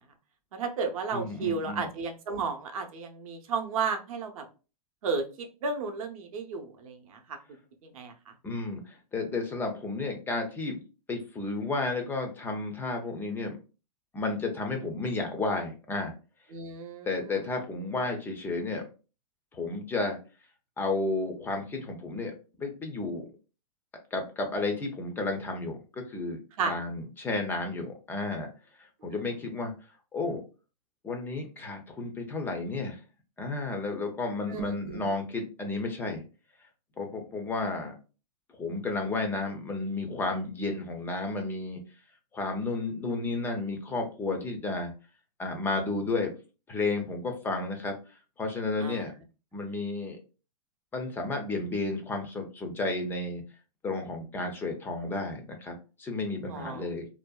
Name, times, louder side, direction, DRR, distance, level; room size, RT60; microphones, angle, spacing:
voice 1, 0.5-4.4 5.0-7.2 7.8-8.1 16.5-17.4 26.6-26.7 34.5-35.0 48.8-49.1 56.5-56.8, right 5 dB, 60° right, 4 dB, 0.6 m, -33 dB
voice 2, 1.1-1.9 8.4-10.8 11.1-13.5 14.1-16.1 17.0-18.8 19.5-20.2 20.8-22.3 22.6-23.3 24.1-26.4 26.6-28.5 28.8-29.7 30.1-30.4 31.0-33.0 33.4-36.2 37.0-37.9 38.5-41.8 42.3-44.9 45.4-46.3 46.7-48.0 48.4-49.1 49.5-50.2 50.9-53.4 53.8-57.1, left 3 dB, 10° left, 4 dB, 0.3 m, -32 dB
2.6 x 2.2 x 2.2 m, 0.33 s
hypercardioid pair, 130°, 20 cm